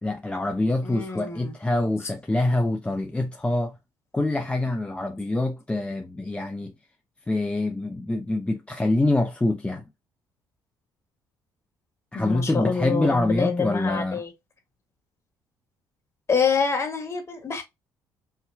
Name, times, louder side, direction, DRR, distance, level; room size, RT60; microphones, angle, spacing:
voice 1, 0.0-3.8 4.1-6.7 7.3-9.8 12.1-14.2, left 2 dB, 15° left, 0.7 m, -25 dB
voice 2, 0.8-1.5 12.1-14.3 16.3-17.6, left 5 dB, 35° left, 2.4 m, -26 dB
5.7 x 3.0 x 2.3 m
supercardioid pair, 75°, 8 cm